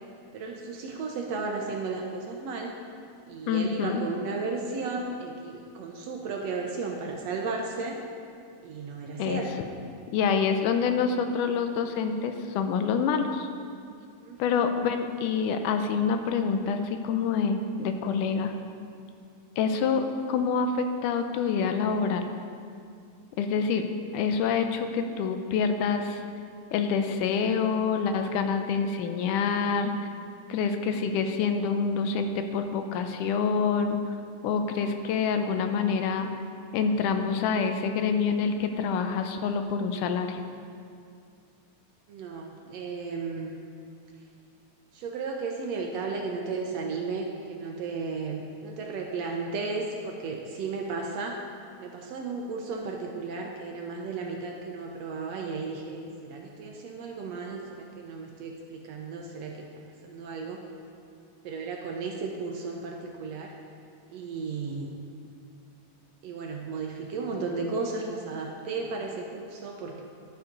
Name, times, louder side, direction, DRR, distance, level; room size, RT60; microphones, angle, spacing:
voice 1, 0.3-2.7 3.3-8.0 8.6-9.5 14.2-14.5 42.1-43.6 44.9-51.4 51.8-59.7 60.0-60.6 61.4-63.5 64.1-65.0 66.2-70.0, right 4 dB, 70° right, 1 dB, 1.7 m, -34 dB
voice 2, 3.5-4.0 9.2-9.4 10.1-13.5 14.4-18.5 19.6-22.3 23.4-23.9 24.1-26.2 26.7-30.0 30.5-34.0 34.4-36.3 36.7-40.4, left 5 dB, 85° left, 7 dB, 2.2 m, -26 dB
11.5 x 7.1 x 5.2 m, 2.4 s
omnidirectional pair, 3.6 m